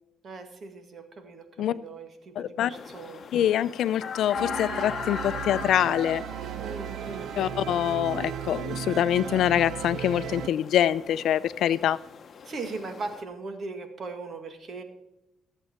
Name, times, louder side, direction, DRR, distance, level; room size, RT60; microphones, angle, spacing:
voice 1, 0.2-3.2 6.6-7.6 12.4-14.8, right 3 dB, 50° right, 7 dB, 2.0 m, -39 dB
voice 2, 2.4-2.7 3.3-6.2 7.4-12.0, left 11 dB, 75° left, 16 dB, 0.5 m, -25 dB
sound 1, 2.7-13.2, left 7 dB, 50° left, 0.9 m, -40 dB
sound 2, 4.3-10.5, right 10 dB, 70° right, 0.4 m, -36 dB
14.5 x 7.7 x 4.5 m, 0.91 s
cardioid pair, 90°, 0 cm